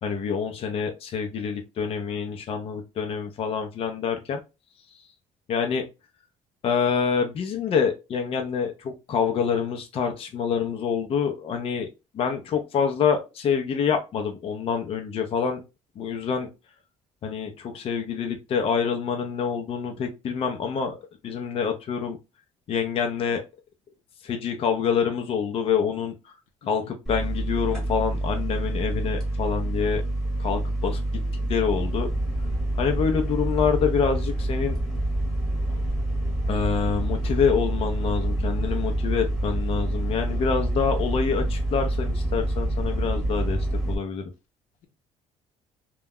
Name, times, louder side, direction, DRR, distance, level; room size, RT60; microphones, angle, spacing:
voice 1, 0.0-4.4 4.9-5.0 5.5-5.8 6.6-11.9 12.1-15.6 16.0-16.5 17.2-21.0 21.2-22.2 22.7-23.4 24.2-26.4 26.7-30.0 30.4-31.0 31.5-32.1 32.8-34.8 36.5-44.3, left 6 dB, 45° left, 0.5 m, -26 dB
sound 1, 27.1-44.0, right 1 dB, 5° left, 0.9 m, -27 dB
voice 2, 35.7-36.1 38.6-38.8 40.2-40.5, left 4 dB, 90° left, 0.7 m, -50 dB
2.3 x 2.1 x 3.5 m
cardioid pair, 125°, 13 cm